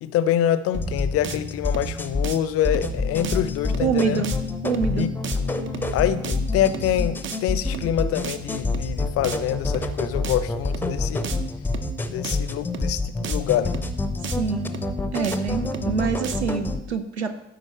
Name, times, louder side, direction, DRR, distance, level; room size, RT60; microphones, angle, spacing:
voice 1, 0.0-4.2 4.9-5.1 5.9-11.3 12.1-13.8, left 11 dB, 45° left, 14 dB, 0.6 m, -25 dB
sound 1, 0.7-16.8, left 3 dB, 5° left, 0.6 m, -28 dB
sound 2, 0.7-1.0 1.2-1.4 1.7-2.0 2.2-2.4 2.7-3.0 3.2-3.4 3.7-4.0 4.2-4.4 4.7-5.0 5.2-5.4 5.7-6.0 6.2-6.4 6.7-7.0 7.2-7.4 7.7-8.0 8.2-8.4 8.7-9.0 9.2-9.4 9.7-10.0 10.2-10.4 10.7-11.0 11.2-11.4 11.7-12.0 12.2-12.4 12.7-13.0 13.2-13.4 13.7-14.0 14.2-14.4 14.7-15.0 15.2-15.4 15.7-16.0 16.2-16.4, right 7 dB, 35° right, 0.7 m, -33 dB
voice 2, 3.8-4.4 4.6-5.1 14.2-14.7 15.1-17.3, right 6 dB, 85° right, 9 dB, 0.6 m, -26 dB
12.0 x 5.0 x 4.3 m, 0.89 s
figure-of-eight pair, 50°, 32 cm